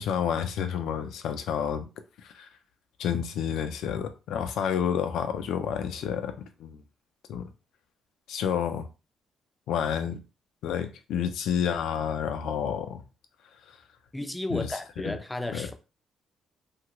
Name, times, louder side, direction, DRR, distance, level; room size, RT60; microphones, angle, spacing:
voice 1, 0.0-1.9 2.2-2.5 3.0-6.8 7.3-7.5 8.3-8.9 9.7-10.2 10.6-13.0 13.7-13.8 14.5-15.2 15.5-15.7, left 8 dB, 80° left, 0.4 m, -30 dB
voice 2, 14.1-15.7, left 1 dB, 10° left, 0.4 m, -33 dB
2.8 x 2.4 x 2.9 m
cardioid pair, 90°, 0 cm